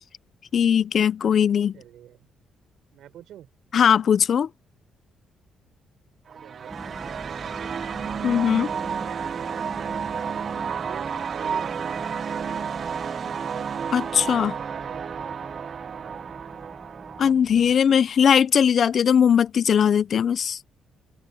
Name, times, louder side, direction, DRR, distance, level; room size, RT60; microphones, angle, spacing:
voice 1, 0.5-1.7 3.7-4.5 8.2-8.7 13.9-14.6 17.2-20.6, left 8 dB, 55° left, 0.6 m, -19 dB
voice 2, 1.7-2.3 2.9-3.5 6.4-8.1 8.8-9.6 10.2-12.3 14.4-15.0 15.9-16.3, right 11 dB, 80° right, 5.5 m, -48 dB
sound 1, 6.3-17.3, right 7 dB, 50° right, 0.3 m, -31 dB
sound 2, 6.7-17.7, right 1 dB, 5° right, 1.3 m, -44 dB
open air
cardioid pair, 90°, 0 cm